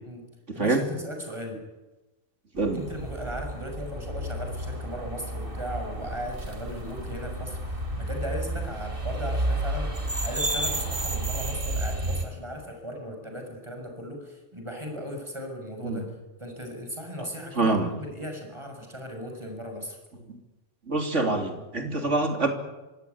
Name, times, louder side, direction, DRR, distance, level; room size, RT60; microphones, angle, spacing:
voice 1, 0.5-1.6 2.7-16.0 16.4-20.0, equal, 25° right, 3 dB, 6.8 m, -37 dB
sound 1, 2.6-12.3, right 1 dB, 45° right, 3.3 m, -31 dB
voice 2, 17.6-17.9 20.3-20.4 20.9-22.5, right 3 dB, 70° right, 5 dB, 3.6 m, -25 dB
25.5 x 17.5 x 9.7 m, 1.1 s
omnidirectional pair, 1.3 m